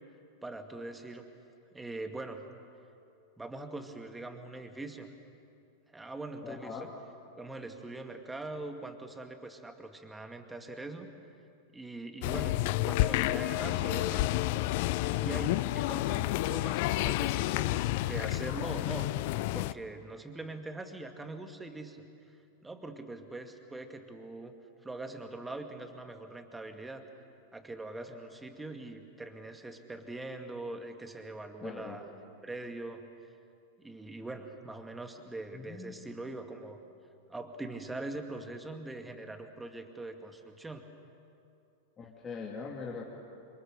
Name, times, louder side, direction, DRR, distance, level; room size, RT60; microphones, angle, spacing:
voice 1, 0.4-1.3 1.7-2.5 3.4-5.1 5.9-6.9 7.4-11.1 11.7-14.3 14.8-14.9 15.2-19.1 19.5-22.0 22.6-24.5 24.8-27.0 27.5-32.0 32.4-33.1 33.8-36.8 37.3-40.8, right 2 dB, 10° right, 6 dB, 2.3 m, -42 dB
voice 2, 6.4-6.9 31.6-32.0 35.5-35.9 42.0-43.1, left 5 dB, 20° left, -2 dB, 2.9 m, -41 dB
sound 1, 12.2-19.7, left 17 dB, 50° left, 0.6 m, -30 dB
27.5 x 27.0 x 6.7 m, 2.5 s
figure-of-eight pair, 90°, 0 cm